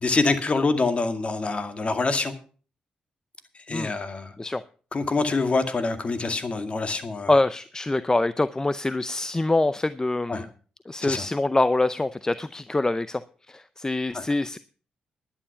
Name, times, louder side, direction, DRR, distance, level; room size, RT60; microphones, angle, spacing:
voice 1, 0.0-2.3 3.7-4.3 4.9-7.3 10.3-10.5 11.0-11.3 14.1-14.2, left 3 dB, 40° left, 8 dB, 2.1 m, -25 dB
voice 2, 7.3-10.5 10.9-13.2 13.5-14.6, left 2 dB, 20° left, 15 dB, 0.6 m, -25 dB
11.0 x 9.9 x 5.8 m, 0.40 s
supercardioid pair, 55°, 3 cm